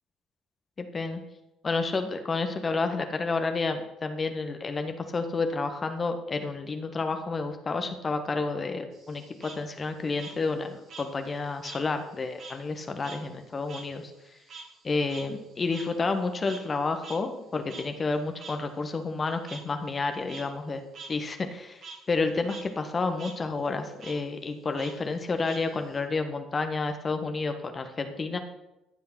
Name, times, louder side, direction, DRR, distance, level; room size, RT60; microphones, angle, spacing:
voice 1, 0.8-1.2 1.6-14.0 14.8-20.8 21.1-21.8 22.1-28.4, left 3 dB, 35° left, 7 dB, 1.4 m, -30 dB
Frog, 8.9-11.9 12.2-16.8 17.0-17.2 17.7-17.8 18.4-18.5 19.5-19.6 20.1-20.4 20.9-21.1 21.4-22.0 22.4-22.6 22.9-23.3 24.0-24.1 24.8-26.0, right 4 dB, 55° right, 2.9 m, -45 dB
14.5 x 5.7 x 5.9 m, 0.92 s
hypercardioid pair, 55°, 0 cm